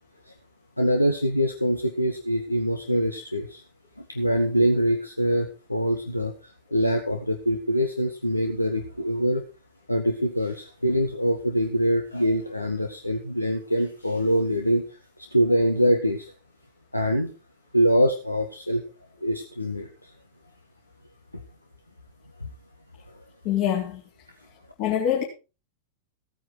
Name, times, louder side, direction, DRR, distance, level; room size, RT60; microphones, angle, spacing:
voice 1, 0.8-3.6 4.0-6.3 6.7-9.4 9.9-14.8 15.3-16.3 16.9-17.3 17.7-18.8 19.2-20.1 21.3-21.4 22.4-22.5, equal, 85° left, 1.5 m, -24 dB
voice 2, 23.4-24.0 24.8-25.2, left 10 dB, 45° left, 3.5 m, -24 dB
16.0 x 9.5 x 4.6 m
figure-of-eight pair, 90°, 0 cm